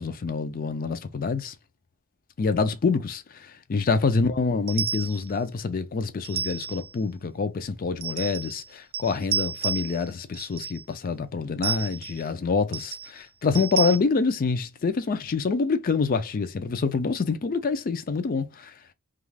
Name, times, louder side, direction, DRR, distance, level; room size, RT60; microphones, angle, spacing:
voice 1, 0.0-1.5 2.4-18.7, left 4 dB, 40° left, 0.4 m, -26 dB
sound 1, 4.7-5.3 6.2-6.9 8.0-8.7 8.9-10.1 10.3-10.8 11.6-12.2 12.7-13.1 13.5-14.0, right 7 dB, 45° right, 0.3 m, -31 dB
2.4 x 2.3 x 3.2 m
head